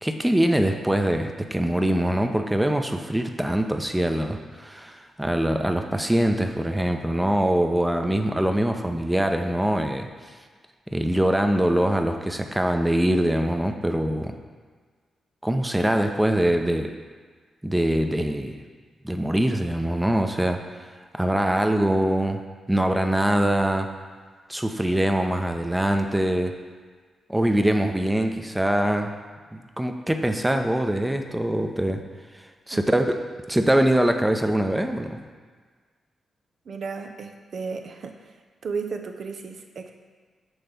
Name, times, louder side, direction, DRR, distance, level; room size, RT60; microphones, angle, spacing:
voice 1, 0.0-10.1 10.9-14.3 15.4-16.9 17.6-18.6 19.0-20.6 21.1-22.4 22.7-23.9 24.5-26.5 27.3-29.1 29.5-32.0 32.7-33.2 33.5-35.2, right 1 dB, 10° right, 5 dB, 0.6 m, -23 dB
voice 2, 36.7-38.4 38.6-39.9, right 5 dB, 65° right, 5 dB, 0.5 m, -34 dB
6.2 x 3.3 x 5.1 m, 1.5 s
hypercardioid pair, 40°, 0 cm